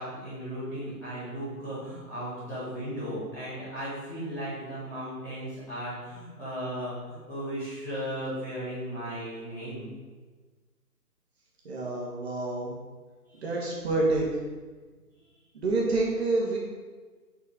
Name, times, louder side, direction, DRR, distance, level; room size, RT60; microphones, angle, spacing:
voice 1, 0.0-9.9 13.2-13.4, equal, 5° left, -17 dB, 0.9 m, -36 dB
voice 2, 11.6-12.7 13.4-14.3 15.5-16.6, right 2 dB, 40° right, -4 dB, 2.3 m, -27 dB
6.5 x 5.4 x 5.1 m, 1.4 s
figure-of-eight pair, 150°, 47 cm